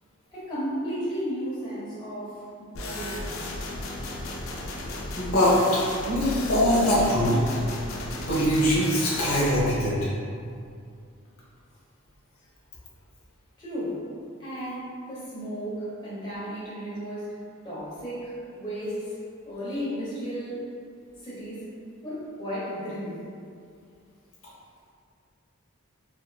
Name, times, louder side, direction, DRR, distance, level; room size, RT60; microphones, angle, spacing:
voice 1, 0.3-3.5 13.6-14.1 14.4-17.4 17.6-19.1 19.4-20.6 21.2-21.7 22.0-23.2, equal, 20° left, -9 dB, 0.7 m, -34 dB
sound 1, 2.7-9.6, left 2 dB, 65° left, 0.3 m, -34 dB
voice 2, 5.2-5.5 6.1-7.4 8.3-10.0, equal, 80° left, -6 dB, 0.7 m, -22 dB
2.8 x 2.3 x 2.2 m, 2.3 s
head